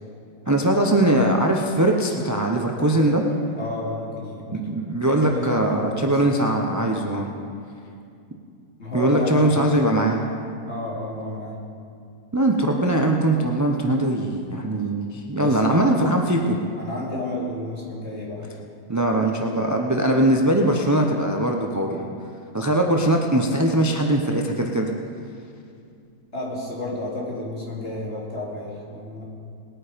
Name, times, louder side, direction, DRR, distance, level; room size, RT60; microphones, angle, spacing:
voice 1, 0.5-3.2 4.5-7.3 8.9-10.2 12.3-16.6 18.9-22.0 22.5-24.9, right 1 dB, 25° right, 1 dB, 0.3 m, -21 dB
voice 2, 3.6-4.6 5.0-6.3 8.8-9.6 10.7-11.6 15.4-16.0 16.8-18.5 26.3-29.2, left 1 dB, 40° left, -4 dB, 3.1 m, -31 dB
20.0 x 9.0 x 5.1 m, 2.4 s
omnidirectional pair, 1.8 m